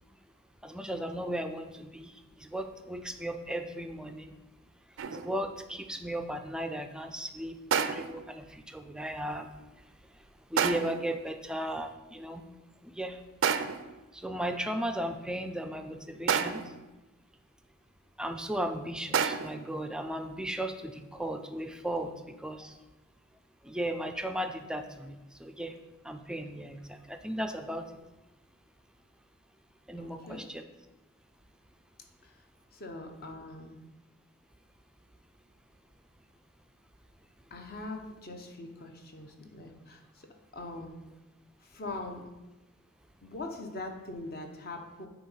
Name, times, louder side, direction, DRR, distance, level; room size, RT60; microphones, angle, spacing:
voice 1, 0.6-4.3 5.1-9.8 10.1-10.2 10.5-12.4 12.8-13.2 14.1-16.6 18.2-22.8 23.6-25.8 26.0-27.9 29.9-30.6, right 1 dB, 5° right, 7 dB, 0.4 m, -36 dB
sound 1, 5.0-5.4 7.7-8.3 10.6-11.1 13.4-14.0 16.3-16.8 19.1-19.7, right 7 dB, 65° right, 0.4 m, -29 dB
voice 2, 30.0-30.4 32.7-33.8 37.5-40.0 40.5-40.9 41.7-42.2 43.2-45.1, left 2 dB, 50° left, 3 dB, 0.9 m, -41 dB
8.9 x 3.0 x 5.6 m, 1.0 s
head